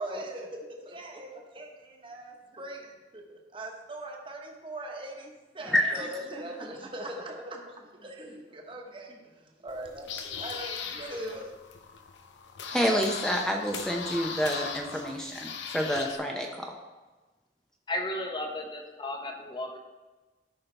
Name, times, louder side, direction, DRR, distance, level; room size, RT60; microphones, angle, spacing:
voice 1, 0.0-11.5, right 1 dB, 30° right, 1 dB, 1.2 m, -41 dB
voice 2, 5.6-6.1 12.7-16.7, equal, 5° left, 1 dB, 0.7 m, -28 dB
sound 1, 9.7-16.2, left 5 dB, 90° left, 0.7 m, -39 dB
voice 3, 17.9-19.8, left 1 dB, 25° left, 3 dB, 1.0 m, -34 dB
13.0 x 5.6 x 3.4 m, 1.2 s
head